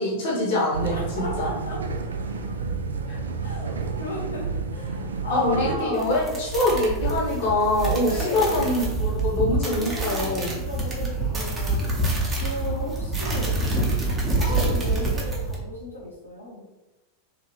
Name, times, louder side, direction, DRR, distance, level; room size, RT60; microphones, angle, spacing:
voice 1, 0.0-1.5 3.1-3.2 5.3-10.5, left 2 dB, 50° left, -5 dB, 0.9 m, -24 dB
sound 1, 0.7-5.7, right 4 dB, 70° right, 0.4 m, -30 dB
voice 2, 0.9-1.8 3.4-6.3 8.0-8.8 9.6-13.5 14.0-16.6, left 1 dB, 80° left, -6 dB, 0.9 m, -35 dB
sound 2, 5.9-15.5, right 2 dB, 20° right, 0.8 m, -26 dB
2.8 x 2.4 x 2.9 m, 1.1 s
figure-of-eight pair, 90°, 0 cm